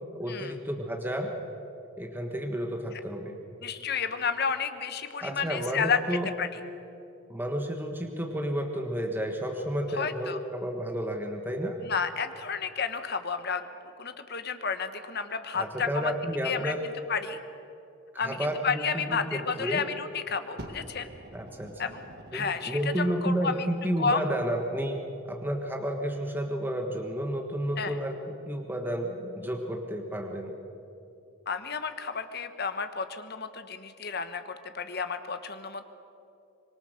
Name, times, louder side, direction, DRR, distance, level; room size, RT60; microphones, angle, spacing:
voice 1, 0.1-1.3 2.0-3.3 5.2-6.3 7.3-11.8 15.5-16.8 18.1-19.2 19.6-19.8 21.3-21.8 22.3-28.2 28.5-30.5, equal, 10° right, 2 dB, 1.5 m, -31 dB
voice 2, 3.6-6.5 10.0-10.4 11.8-13.7 14.0-16.1 16.4-16.7 17.1-17.4 18.2-21.1 21.8-22.0 22.3-23.7 24.0-24.2 27.8-27.9 31.5-35.8, left 5 dB, 50° left, 9 dB, 1.2 m, -31 dB
Fire, 20.6-23.4 24.2-24.3, right 1 dB, 50° right, 2.1 m, -46 dB
25.0 x 22.5 x 6.6 m, 2.8 s
head